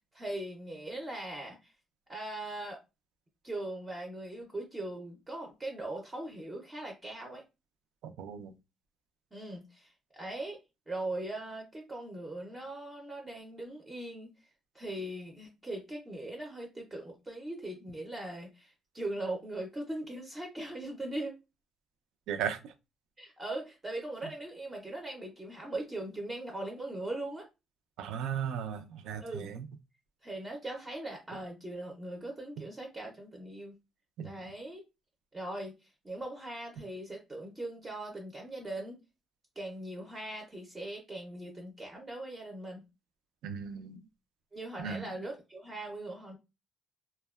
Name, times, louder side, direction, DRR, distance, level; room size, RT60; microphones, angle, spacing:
voice 1, 0.1-1.7 2.1-2.8 3.4-7.4 9.3-10.6 10.9-14.3 14.7-21.4 23.2-27.5 29.2-29.5 30.2-33.8 34.2-34.8 35.3-39.0 39.6-42.8 44.5-46.4, right 1 dB, 15° right, 0.4 m, -40 dB
voice 2, 8.0-8.5 22.3-22.7 28.0-29.6 34.2-34.3 43.4-44.0 44.8-45.2, right 8 dB, 90° right, 0.3 m, -36 dB
2.6 x 2.1 x 2.2 m
cardioid pair, 150°, 0 cm